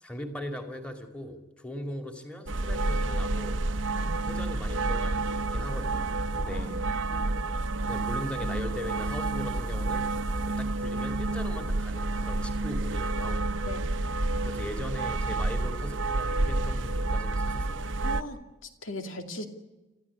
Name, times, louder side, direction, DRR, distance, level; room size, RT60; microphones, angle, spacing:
voice 1, 0.0-3.6 4.2-6.7 7.9-10.1 10.5-13.5 14.4-17.9, left 1 dB, 5° left, 5 dB, 2.3 m, -39 dB
sound 1, 2.5-18.2, right 2 dB, 75° right, 0.9 m, -29 dB
voice 2, 6.4-7.3 13.6-13.9 18.0-18.4 18.8-19.4, left 2 dB, 80° left, 6 dB, 2.5 m, -39 dB
29.5 x 14.5 x 9.7 m, 1.1 s
head